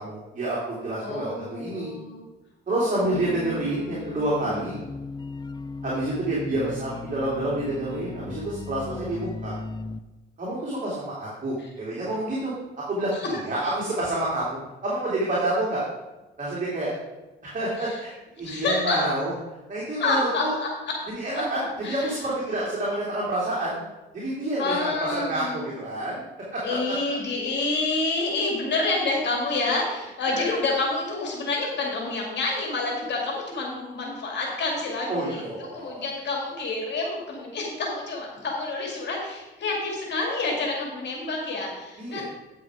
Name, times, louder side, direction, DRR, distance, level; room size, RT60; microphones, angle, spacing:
voice 1, 0.0-1.9 2.7-4.8 5.8-9.6 10.4-12.5 12.9-15.8 16.4-16.9 17.4-19.3 19.7-20.5 21.1-23.8 24.1-26.2 26.5-26.9 30.3-30.6 35.1-36.0 42.0-42.2, right 1 dB, 40° right, -6 dB, 2.9 m, -28 dB
voice 2, 1.0-2.2 2.7-4.3 11.6-11.7 13.1-13.2 17.8-18.0 18.4-19.0 20.0-20.7 21.8-22.1 24.6-25.6 26.6-35.4 35.7-42.2, left 3 dB, 60° left, -1 dB, 2.2 m, -28 dB
sound 1, 3.1-10.0, left 4 dB, 20° left, 0.4 m, -37 dB
9.1 x 6.0 x 4.9 m, 1.1 s
cardioid pair, 90°, 20 cm